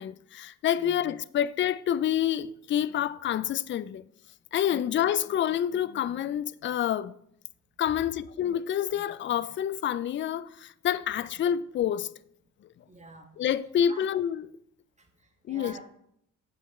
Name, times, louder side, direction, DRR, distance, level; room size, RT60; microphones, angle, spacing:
voice 1, 0.0-4.0 4.5-7.1 7.8-12.1 13.4-14.5 15.5-15.8, left 10 dB, 40° left, 0.4 m, -28 dB
voice 2, 12.8-13.3 13.9-14.1 15.0-15.8, right 3 dB, 25° right, 1.6 m, -48 dB
7.8 x 6.2 x 4.2 m
cardioid pair, 90°, 30 cm